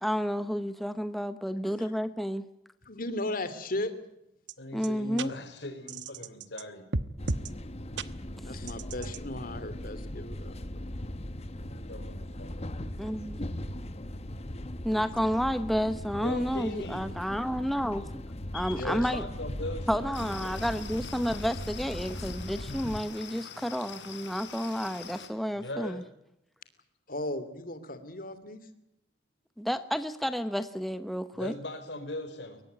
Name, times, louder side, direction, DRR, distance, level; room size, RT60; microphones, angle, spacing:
voice 1, 0.0-2.4 4.7-5.3 8.4-8.5 13.0-13.4 14.8-18.2 18.5-19.2 19.9-26.0 29.6-31.5, equal, ahead, 10 dB, 0.9 m, -31 dB
voice 2, 2.8-3.9 6.2-6.3 8.4-10.8 18.8-19.1 27.1-28.6, left 1 dB, 55° left, 12 dB, 2.9 m, -36 dB
sound 1, 4.5-4.6 4.8-4.9 5.2-5.3 5.9-6.6 6.9-7.5 8.0-8.1 8.7-9.2, right 3 dB, 90° right, 1.1 m, -33 dB
voice 3, 4.6-6.9 11.7-12.7 16.2-17.0 18.5-20.1 25.5-26.0 31.3-32.6, left 1 dB, 70° left, 10 dB, 4.6 m, -39 dB
sound 2, 7.2-23.0, left 1 dB, 35° left, 1.2 m, -39 dB
Stream with Crickets, 20.1-25.3, left 6 dB, 90° left, 4.1 m, -45 dB
22.5 x 19.5 x 9.4 m, 0.81 s
head